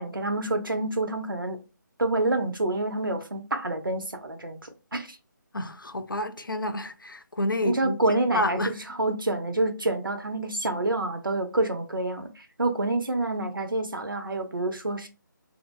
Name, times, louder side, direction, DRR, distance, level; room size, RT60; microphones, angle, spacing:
voice 1, 0.0-1.6 2.0-5.2 7.6-15.1, right 2 dB, 85° right, 0.7 m, -28 dB
voice 2, 5.5-8.0 8.3-8.8 9.1-9.2, left 1 dB, 80° left, 0.5 m, -29 dB
2.6 x 2.2 x 3.1 m
figure-of-eight pair, 150°, 11 cm